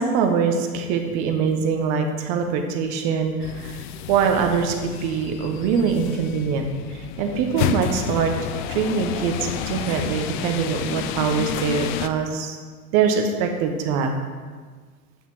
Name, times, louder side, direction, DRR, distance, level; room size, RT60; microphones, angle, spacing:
voice 1, 0.0-12.6 12.9-14.1, right 6 dB, 40° right, 4 dB, 1.2 m, -23 dB
sound 1, 3.4-12.1, left 10 dB, 35° left, 0.4 m, -30 dB
8.5 x 5.7 x 4.5 m, 1.5 s
figure-of-eight pair, 85°, 43 cm